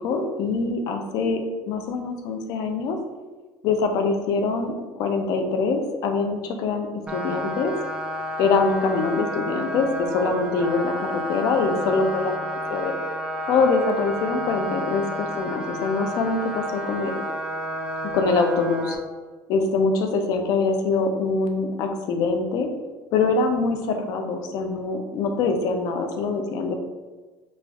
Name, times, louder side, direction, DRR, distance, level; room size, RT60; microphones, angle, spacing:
voice 1, 0.0-3.0 3.6-7.7 8.4-9.9 10.1-12.9 13.5-17.2 18.1-19.0 19.5-22.7 23.1-26.7, left 4 dB, 60° left, 5 dB, 0.5 m, -24 dB
sound 1, 7.1-19.0, equal, 15° right, 0.4 m, -31 dB
4.2 x 2.4 x 2.3 m, 1.3 s
cardioid pair, 140°, 7 cm